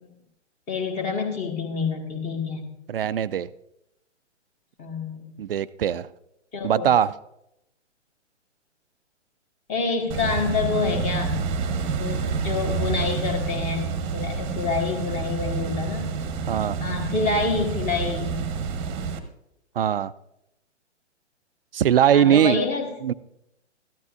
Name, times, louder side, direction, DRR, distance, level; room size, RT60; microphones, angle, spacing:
voice 1, 0.7-2.7 4.8-5.3 6.5-6.9 9.7-11.4 11.9-16.1 16.8-18.4 22.1-22.9, left 4 dB, 20° left, 4 dB, 1.6 m, -27 dB
voice 2, 2.9-3.5 5.4-6.1 6.6-7.1 16.5-16.8 19.8-20.1 21.7-22.6 23.0-23.1, right 10 dB, 50° right, 16 dB, 0.5 m, -20 dB
sound 1, 10.1-19.2, right 5 dB, 25° right, 1.0 m, -28 dB
14.0 x 12.0 x 2.5 m, 0.81 s
figure-of-eight pair, 130°, 36 cm